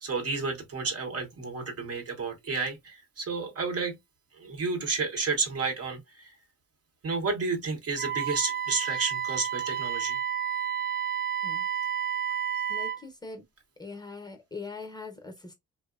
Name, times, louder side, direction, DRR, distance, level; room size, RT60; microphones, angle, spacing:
voice 1, 0.0-4.0 4.4-6.3 7.0-10.2, right 4 dB, 50° right, 0.9 m, -31 dB
Wind instrument woodwind instrument, 8.0-13.0, right 8 dB, 30° right, 0.5 m, -31 dB
voice 2, 12.7-13.5 13.8-15.5, left 4 dB, 15° left, 0.7 m, -41 dB
2.8 x 2.0 x 2.3 m
cardioid pair, 90°, 30 cm